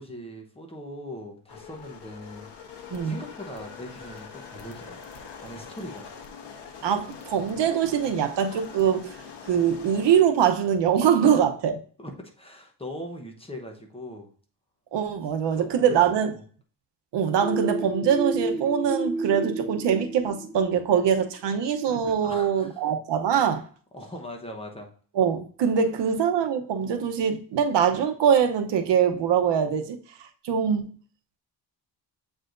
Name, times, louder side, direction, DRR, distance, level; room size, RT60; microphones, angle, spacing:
voice 1, 0.0-2.5 3.0-5.1 5.4-6.1 11.2-11.4 12.0-14.3 15.5-16.4 22.2-22.8 23.9-24.9, left 1 dB, 15° left, 0.9 m, -40 dB
sound 1, 1.5-10.2, left 6 dB, 80° left, 1.2 m, -43 dB
voice 2, 6.8-9.1 9.5-11.8 14.9-16.3 17.1-23.6 25.2-30.9, right 8 dB, 85° right, 0.9 m, -23 dB
sound 2, 17.4-21.1, right 2 dB, ahead, 0.3 m, -31 dB
7.5 x 4.9 x 2.6 m
wide cardioid pair, 175°, 42 cm